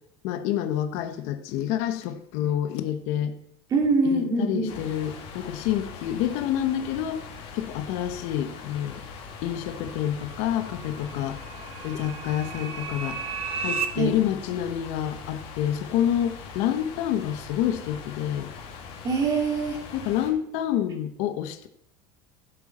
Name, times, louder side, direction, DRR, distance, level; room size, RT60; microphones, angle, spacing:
voice 1, 0.2-3.4 4.0-7.2 7.5-9.0 9.4-11.4 11.8-13.2 13.6-18.5 19.9-21.7, left 10 dB, 60° left, 8 dB, 1.1 m, -28 dB
voice 2, 3.7-4.8 14.0-14.2 19.0-19.8, right 3 dB, 25° right, 1 dB, 2.7 m, -24 dB
sound 1, 4.7-20.3, left 6 dB, 45° left, 2.9 m, -42 dB
sound 2, 9.5-13.9, right 6 dB, 45° right, 1.1 m, -35 dB
15.0 x 7.7 x 4.2 m, 0.79 s
cardioid pair, 165°, 13 cm